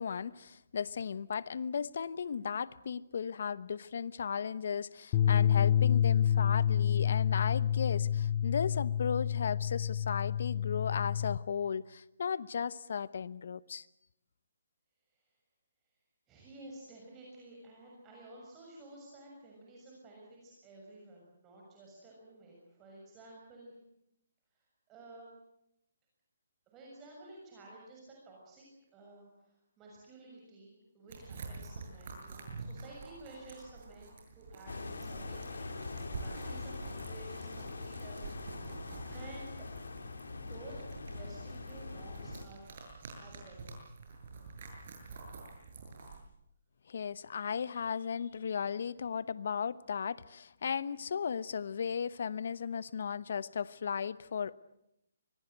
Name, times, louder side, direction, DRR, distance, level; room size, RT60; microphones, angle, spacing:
voice 1, 0.0-13.9 46.9-54.5, left 6 dB, 60° left, 1.0 m, -36 dB
sound 1, 5.1-11.4, left 9 dB, 30° left, 1.1 m, -28 dB
voice 2, 16.3-23.7 24.9-25.3 26.7-28.6 28.9-39.7 40.4-40.8 41.1-42.7 43.1-43.7, right 2 dB, 20° right, 6.7 m, -53 dB
sound 2, 31.1-46.2, right 4 dB, 50° right, 8.0 m, -48 dB
sound 3, 34.7-42.5, left 3 dB, 80° left, 3.5 m, -43 dB
25.0 x 20.5 x 8.0 m
hypercardioid pair, 145°, 0 cm